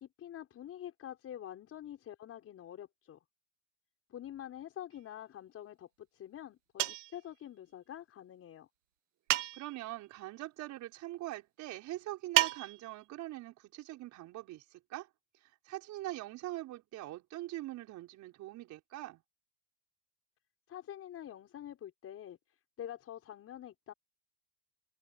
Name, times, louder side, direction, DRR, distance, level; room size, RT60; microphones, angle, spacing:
voice 1, 0.0-3.2 4.1-8.7 20.7-22.4 22.8-23.9, left 11 dB, 40° left, 5.6 m, -46 dB
sound 1, 6.8-7.2 9.3-9.8 12.4-13.0, right 17 dB, 85° right, 1.1 m, -30 dB
voice 2, 9.5-15.1 15.4-19.2, right 16 dB, 50° right, 5.3 m, -43 dB
supercardioid pair, 100°, 36 cm